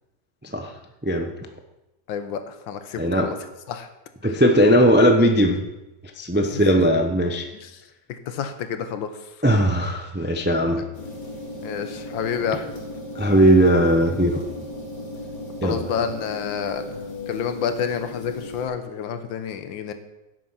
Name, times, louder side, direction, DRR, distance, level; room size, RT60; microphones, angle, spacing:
voice 1, 2.1-3.4 3.7-3.9 6.5-6.6 7.6-7.8 8.1-9.3 10.8-10.9 11.6-12.7 15.6-19.9, left 7 dB, 90° left, 9 dB, 1.7 m, -29 dB
voice 2, 3.0-3.3 4.2-5.6 6.2-7.5 9.4-10.8 13.2-14.4 15.6-15.8, equal, 15° right, 4 dB, 0.3 m, -18 dB
sound 1, 10.9-18.7, left 2 dB, 70° left, 2.6 m, -36 dB
10.5 x 8.4 x 5.7 m, 1.0 s
omnidirectional pair, 2.0 m